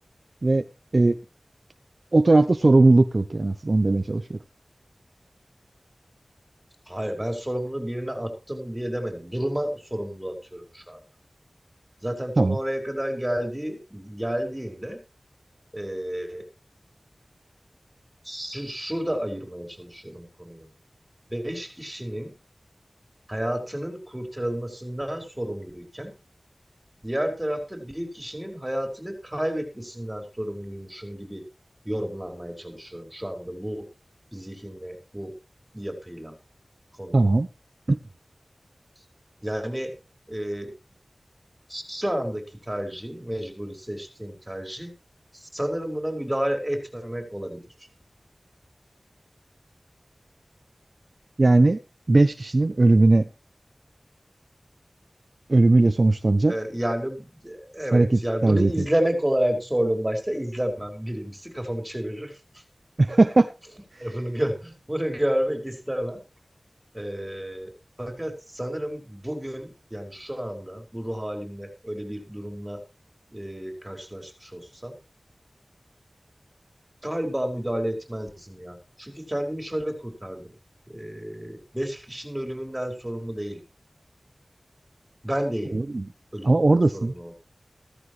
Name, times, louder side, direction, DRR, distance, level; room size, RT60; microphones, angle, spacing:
voice 1, 2.1-4.4 12.4-12.6 37.1-37.5 37.9-38.0 51.4-51.8 52.1-53.3 55.5-56.5 57.9-58.8 63.0-63.5 85.7-86.0 86.4-87.1, right 2 dB, 55° right, 10 dB, 0.7 m, -18 dB
voice 2, 6.9-11.0 12.0-15.0 15.7-16.4 18.2-20.7 21.3-22.3 23.3-26.1 27.0-31.4 31.9-33.9 34.3-35.3 35.7-36.4 37.0-37.3 39.4-39.9 40.3-40.7 41.7-44.9 45.3-47.6 56.5-62.6 64.0-66.2 66.9-72.8 73.3-75.0 77.0-80.6 80.9-83.6 85.2-85.8 86.3-87.3, equal, 15° right, 4 dB, 5.2 m, -31 dB
15.5 x 14.0 x 3.2 m, 0.30 s
wide cardioid pair, 65°, 0 cm